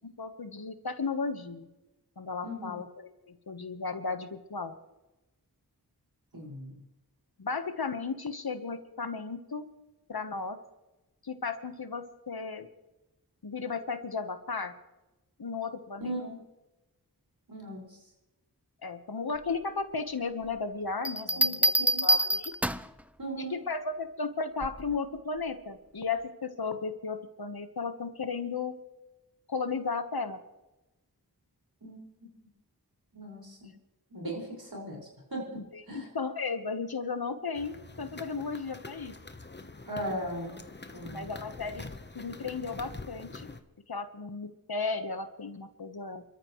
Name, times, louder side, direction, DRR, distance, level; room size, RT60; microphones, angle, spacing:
voice 1, 0.2-1.7 2.2-4.8 7.4-9.7 10.1-10.6 11.2-12.7 13.4-14.7 15.4-16.1 18.8-21.8 22.0-22.5 23.4-28.7 29.5-30.4 35.5-39.1 41.1-41.9 42.1-43.5 43.9-46.2, left 4 dB, 70° left, 9 dB, 1.2 m, -35 dB
voice 2, 6.3-6.8 16.0-16.4 17.5-18.0 21.4-22.0 23.2-23.6 31.8-32.3 33.1-33.7 34.1-35.0 35.3-35.6 35.9-36.1 39.9-40.6 40.9-41.3, right 1 dB, 65° right, -2 dB, 5.4 m, -38 dB
Bell, 21.1-23.0 24.6-25.0, right 1 dB, 5° right, 0.5 m, -26 dB
sound 1, 37.5-43.6, left 3 dB, 30° left, 1.0 m, -45 dB
28.5 x 13.5 x 3.1 m, 1.0 s
wide cardioid pair, 40°, 38 cm